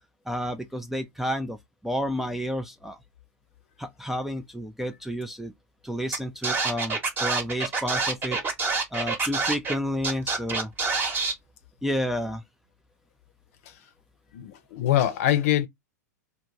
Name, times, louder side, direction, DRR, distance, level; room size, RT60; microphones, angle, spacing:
voice 1, 0.3-1.6 1.8-3.0 3.8-5.5 5.8-8.4 8.9-10.7 11.8-12.4, equal, 5° right, 0.4 m, -30 dB
Scratching (performance technique), 6.1-6.2 6.4-9.7 10.0-11.3, right 4 dB, 20° right, 0.9 m, -26 dB
voice 2, 14.3-15.7, left 12 dB, 55° left, 0.7 m, -23 dB
2.4 x 2.4 x 3.0 m
hypercardioid pair, 105°, 9 cm